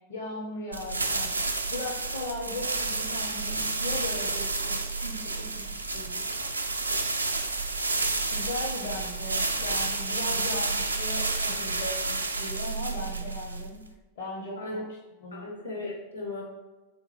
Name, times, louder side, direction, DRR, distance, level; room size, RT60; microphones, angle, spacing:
voice 1, 0.1-1.4 1.7-6.1 6.4-6.5 8.3-13.8 14.2-14.8 15.2-15.5, left 1 dB, 60° left, -2 dB, 0.8 m, -38 dB
sound 1, 0.7-13.9, right 3 dB, 80° right, 0.3 m, -30 dB
voice 2, 15.3-16.4, left 2 dB, 85° left, -1 dB, 1.1 m, -36 dB
4.4 x 3.7 x 3.2 m, 1.2 s
figure-of-eight pair, 90°, 0 cm